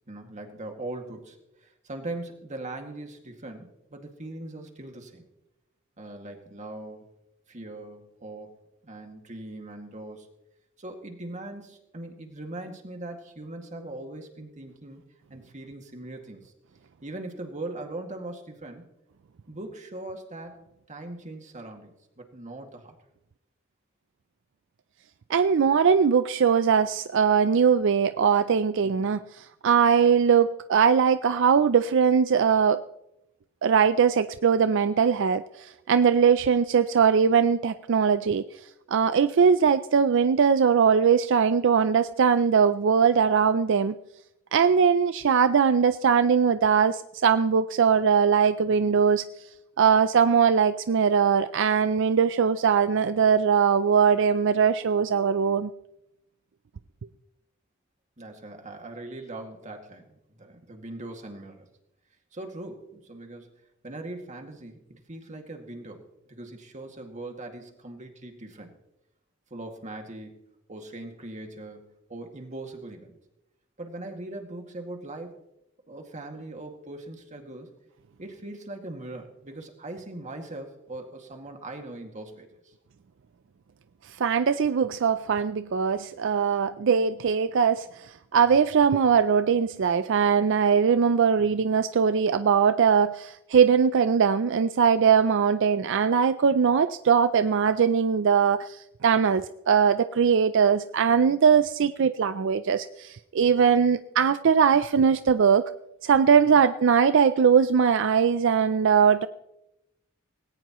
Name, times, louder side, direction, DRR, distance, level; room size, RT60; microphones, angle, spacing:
voice 1, 0.1-5.2 6.0-7.1 7.5-8.6 8.8-10.3 10.8-15.0 15.3-16.5 17.0-18.8 19.5-20.6 20.9-23.0 28.8-29.1 48.7-49.0 58.2-61.7 62.3-63.5 63.8-66.0 66.3-68.7 69.5-70.4 70.7-73.2 73.8-75.4 75.9-77.7 78.2-82.7 91.5-91.7 106.4-106.6, right 2 dB, 35° right, 3 dB, 2.1 m, -40 dB
voice 2, 25.3-32.8 33.6-38.5 38.9-44.0 44.5-49.3 49.8-55.7 84.2-105.7 106.0-109.3, right 6 dB, 65° right, 12 dB, 0.4 m, -21 dB
19.0 x 17.5 x 3.0 m, 0.88 s
head